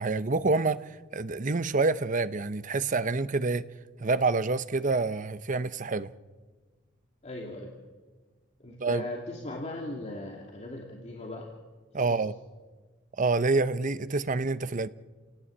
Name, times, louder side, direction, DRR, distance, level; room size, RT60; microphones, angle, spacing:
voice 1, 0.0-3.6 4.0-6.1 8.8-9.1 11.9-12.3 13.2-14.9, right 3 dB, 40° right, 0.8 m, -27 dB
voice 2, 7.2-7.7 8.6-11.5 12.0-12.2, left 1 dB, 35° left, 2.8 m, -38 dB
29.0 x 17.5 x 8.7 m
head